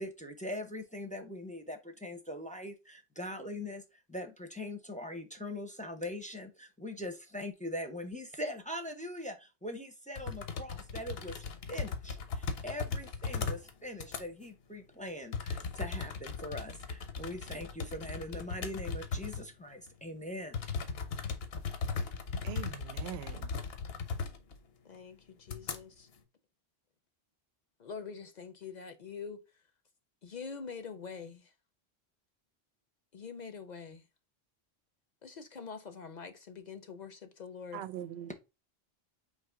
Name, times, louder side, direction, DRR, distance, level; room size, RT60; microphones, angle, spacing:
voice 1, 0.0-20.6, left 1 dB, 10° left, 0.5 m, -42 dB
sound 1, 10.2-13.7 13.9-14.2 15.3-19.5 19.9-20.0 20.5-24.6 24.9-25.0 25.5-25.8, left 5 dB, 75° left, 1.0 m, -38 dB
voice 2, 22.4-23.5 37.7-38.3, right 11 dB, 85° right, 0.8 m, -42 dB
voice 3, 24.8-26.1 27.8-29.4 30.2-31.5 33.1-34.0 35.2-37.8, left 5 dB, 50° left, 0.6 m, -45 dB
4.0 x 2.8 x 4.5 m
omnidirectional pair, 1.0 m